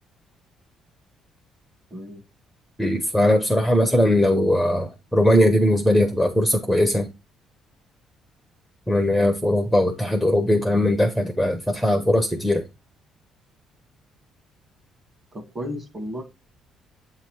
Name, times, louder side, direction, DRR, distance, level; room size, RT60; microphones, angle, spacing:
voice 1, 1.9-2.2 15.3-16.2, equal, 20° right, 1.1 m, -33 dB
voice 2, 2.8-7.1 8.9-12.6, left 1 dB, ahead, 0.5 m, -20 dB
7.8 x 2.9 x 4.4 m
cardioid pair, 160°, 0 cm